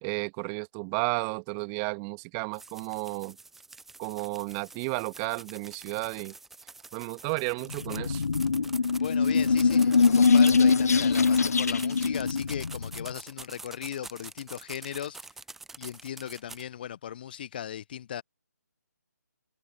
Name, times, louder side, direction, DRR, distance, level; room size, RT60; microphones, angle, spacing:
voice 1, 0.0-3.4 4.0-6.3 6.9-8.2, right 38 dB, 20° right, 2.2 m, -33 dB
sound 1, 2.5-16.6, right 3 dB, 5° right, 1.1 m, -46 dB
sound 2, 7.7-13.1, left 5 dB, 60° left, 0.7 m, -23 dB
voice 2, 9.0-15.3 15.8-18.2, left 10 dB, 30° left, 1.1 m, -38 dB
figure-of-eight pair, 145°, 10 cm